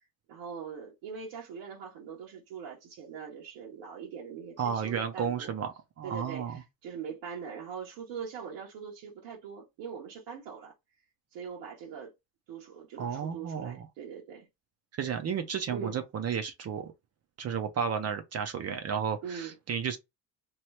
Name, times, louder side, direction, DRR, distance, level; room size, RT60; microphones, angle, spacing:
voice 1, 0.3-5.5 6.0-10.7 11.3-12.1 12.5-14.5 15.7-16.0 19.2-19.5, right 6 dB, 85° right, 1.1 m, -42 dB
voice 2, 4.6-6.6 13.0-13.9 15.0-16.9 17.4-20.0, right 7 dB, 40° right, 0.5 m, -33 dB
3.0 x 2.3 x 3.1 m
cardioid pair, 125°, 42 cm